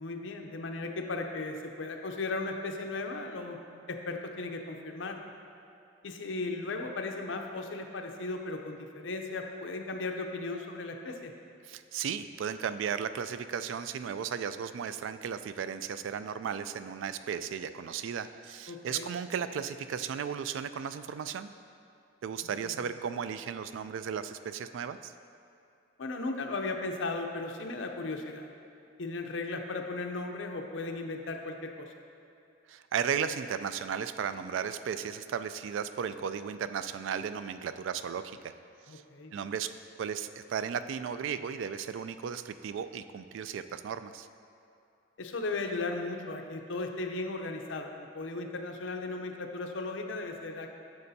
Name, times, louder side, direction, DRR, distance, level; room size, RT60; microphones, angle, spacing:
voice 1, 0.0-3.6 3.9-5.2 6.0-11.3 18.7-19.1 22.4-22.7 26.0-28.5 29.0-31.9 38.9-39.3 45.2-50.7, left 3 dB, 80° left, 4 dB, 0.6 m, -36 dB
voice 2, 11.6-21.5 22.2-25.1 32.7-38.5 38.9-39.0 39.3-39.7 40.0-44.3, right 7 dB, 80° right, 11 dB, 0.3 m, -35 dB
9.5 x 6.6 x 2.7 m, 2.7 s
head